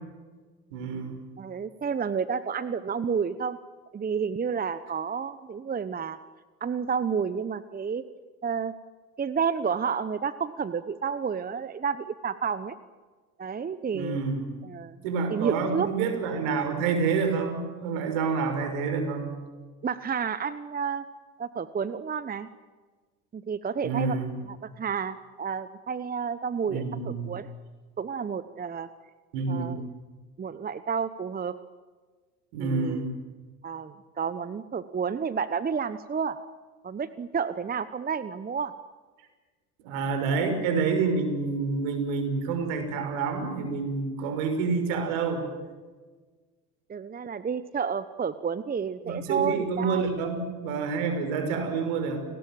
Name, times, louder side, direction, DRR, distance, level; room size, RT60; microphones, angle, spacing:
voice 1, 0.7-1.2 13.9-14.4 15.0-19.3 23.8-24.3 26.7-27.3 29.3-29.8 32.5-33.2 39.8-45.4 49.0-52.3, right 5 dB, 65° right, 6 dB, 6.1 m, -28 dB
voice 2, 1.4-3.6 3.9-6.2 6.6-8.0 8.4-8.7 9.2-12.7 13.4-14.2 14.6-15.0 15.3-15.9 18.6-18.7 19.8-21.0 21.4-22.5 23.3-24.2 24.5-27.5 28.0-28.9 29.5-29.8 30.4-31.5 32.6-33.1 33.6-36.4 36.8-38.7 46.9-50.3, right 6 dB, 20° right, 14 dB, 1.0 m, -30 dB
29.5 x 19.5 x 7.7 m, 1.4 s
hypercardioid pair, 70°, 44 cm